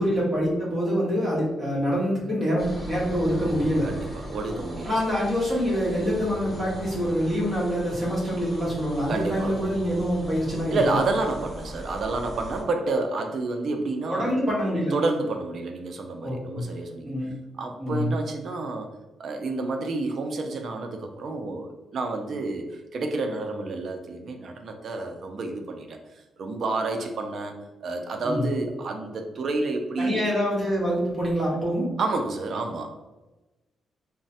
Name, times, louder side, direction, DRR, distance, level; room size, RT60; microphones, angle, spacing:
voice 1, 0.0-3.9 4.8-11.0 14.1-14.9 16.2-16.6 17.0-17.3 17.8-18.1 28.2-28.5 30.0-31.9, equal, 25° right, -6 dB, 1.1 m, -25 dB
sound 1, 2.6-12.6, right 1 dB, 5° left, 0.9 m, -39 dB
voice 2, 3.8-5.0 9.1-9.6 10.7-14.3 14.9-17.1 17.6-18.9 19.2-27.6 27.8-30.2 32.0-33.0, right 3 dB, 55° right, 5 dB, 0.3 m, -29 dB
3.1 x 2.0 x 2.7 m, 1.1 s
cardioid pair, 125°, 0 cm